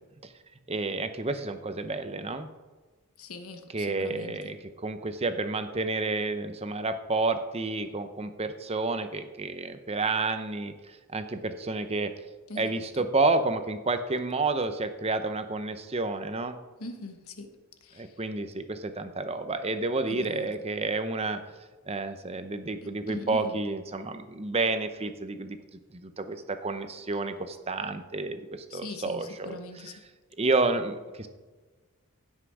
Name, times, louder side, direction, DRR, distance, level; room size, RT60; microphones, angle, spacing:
voice 1, 0.7-2.5 3.7-4.6 4.8-12.1 12.6-16.6 18.0-21.4 21.9-25.6 25.9-29.5 30.4-31.3, right 3 dB, 25° right, 9 dB, 0.8 m, -30 dB
voice 2, 3.2-4.4 12.5-12.8 16.8-17.5 17.8-18.2 20.1-20.5 22.8-23.6 28.7-29.9, left 2 dB, 70° left, 6 dB, 1.3 m, -41 dB
16.0 x 5.8 x 4.8 m, 1.3 s
head